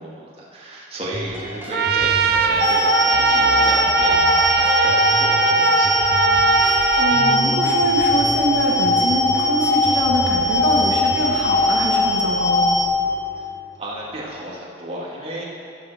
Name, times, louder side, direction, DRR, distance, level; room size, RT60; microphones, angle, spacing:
voice 1, 0.0-6.1 13.4-13.5 13.8-15.6, right 1 dB, 30° right, -5 dB, 1.8 m, -33 dB
sound 1, 1.0-14.4, right 1 dB, 10° right, 1.4 m, -33 dB
Trumpet, 1.7-7.4, right 6 dB, 55° right, 0.5 m, -20 dB
sound 2, 2.6-12.9, left 2 dB, 15° left, 0.6 m, -20 dB
voice 2, 6.5-12.8, right 1 dB, 90° right, -1 dB, 1.2 m, -25 dB
16.5 x 6.2 x 4.1 m, 2.5 s
head